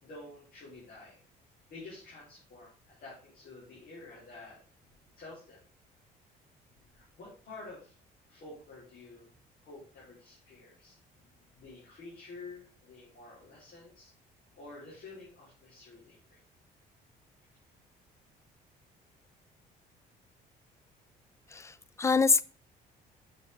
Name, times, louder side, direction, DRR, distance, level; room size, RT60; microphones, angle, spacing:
voice 1, 0.0-1.2 1.7-4.6 5.1-5.6 6.9-8.0 8.3-9.3 9.6-11.3 11.6-14.1 14.6-16.4, left 3 dB, 60° left, 3.7 m, -49 dB
voice 2, 21.5-22.4, left 4 dB, 15° left, 0.4 m, -25 dB
7.5 x 5.8 x 4.0 m
cardioid pair, 110°, 17 cm